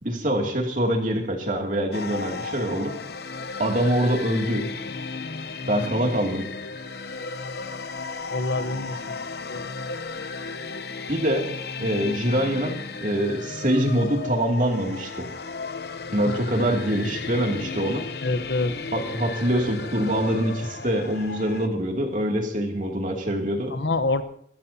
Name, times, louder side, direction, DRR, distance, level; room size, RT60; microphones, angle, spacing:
voice 1, 0.0-2.9 3.6-4.7 5.7-6.5 11.1-11.5 11.8-15.3 16.1-18.0 18.9-23.7, equal, 45° right, 1 dB, 2.7 m, -24 dB
sound 1, 1.9-21.7, left 4 dB, 65° left, 0.9 m, -34 dB
voice 2, 8.3-9.0 9.5-9.7 16.2-16.4 18.2-18.7 23.7-24.2, left 2 dB, 85° left, 10 dB, 1.1 m, -26 dB
25.0 x 14.0 x 2.9 m, 0.65 s
head